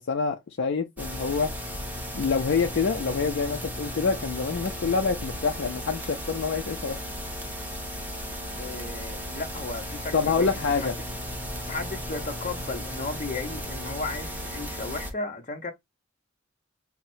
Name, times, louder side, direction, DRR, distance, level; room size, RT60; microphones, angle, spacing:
voice 1, 0.0-1.5 2.1-7.0 10.1-10.9, left 5 dB, 60° left, 0.5 m, -26 dB
sound 1, 1.0-15.1, equal, 10° right, 1.1 m, -35 dB
voice 2, 8.6-10.9 11.7-15.7, left 3 dB, 40° left, 0.8 m, -35 dB
5.8 x 2.1 x 2.6 m
head